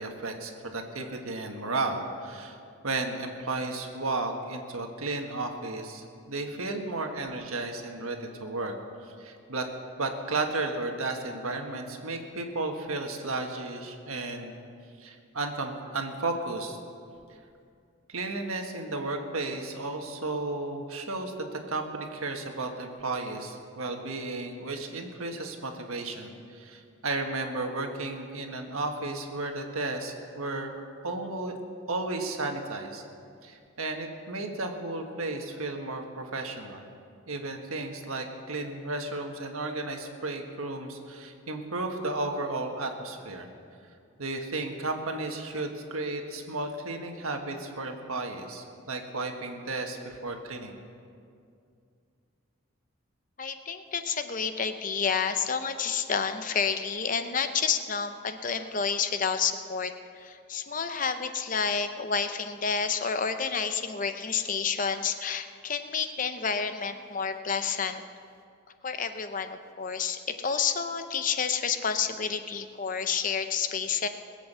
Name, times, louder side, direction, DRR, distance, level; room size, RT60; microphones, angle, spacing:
voice 1, 0.0-2.6 2.8-8.8 9.2-9.7 10.0-14.5 15.0-16.8 18.1-31.6 31.9-33.0 33.4-36.9 37.3-43.5 44.2-50.8, right 2 dB, 85° right, 3 dB, 1.6 m, -33 dB
voice 2, 53.4-59.9 60.2-68.0 68.8-74.1, left 6 dB, 40° left, 9 dB, 0.7 m, -29 dB
21.0 x 8.2 x 6.8 m, 2.4 s
head